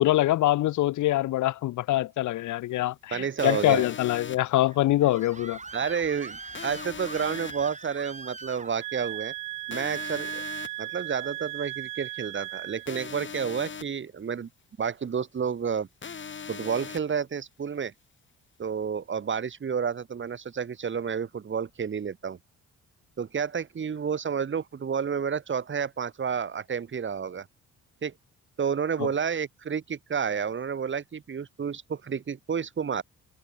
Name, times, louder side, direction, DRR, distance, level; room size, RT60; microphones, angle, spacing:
voice 1, 0.0-5.6 29.0-29.1, left 15 dB, 75° left, 0.9 m, -24 dB
voice 2, 3.1-3.8 5.7-9.3 9.7-10.4 10.8-14.5 14.8-15.9 16.5-17.9 18.6-22.4 23.2-27.5 28.0-28.1 28.6-33.0, right 7 dB, 40° right, 2.1 m, -30 dB
sound 1, 3.4-4.4 6.5-7.5 9.7-10.7 12.9-13.8 16.0-17.0, left 6 dB, 40° left, 3.6 m, -39 dB
Screaming, 4.7-9.2, right 3 dB, 25° right, 3.8 m, -42 dB
sound 2, 8.8-13.1, right 16 dB, 90° right, 2.0 m, -36 dB
cardioid pair, 90°, 30 cm